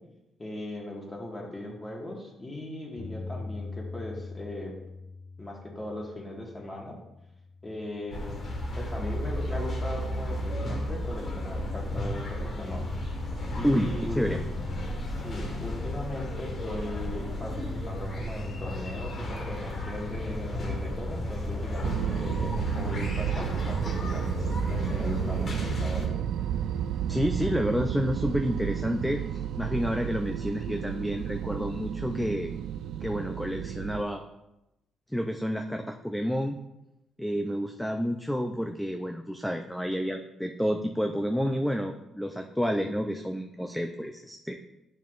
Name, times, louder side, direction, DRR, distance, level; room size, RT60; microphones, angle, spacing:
voice 1, 0.4-4.7 5.4-7.0 7.6-8.5 8.8-12.8 13.6-14.5 15.2-26.2, left 1 dB, 20° left, -2 dB, 1.8 m, -38 dB
Bass guitar, 3.0-9.2, left 3 dB, 75° left, 0.8 m, -43 dB
sound 1, 8.1-26.1, left 1 dB, 45° left, 1.5 m, -33 dB
voice 2, 13.6-14.4 27.1-32.5 33.0-34.2 35.1-36.6 37.2-44.5, equal, 5° left, 4 dB, 0.5 m, -29 dB
sound 2, 21.8-34.0, right 10 dB, 75° right, 0.3 m, -32 dB
9.0 x 5.6 x 2.5 m, 0.92 s
cardioid pair, 90°, 0 cm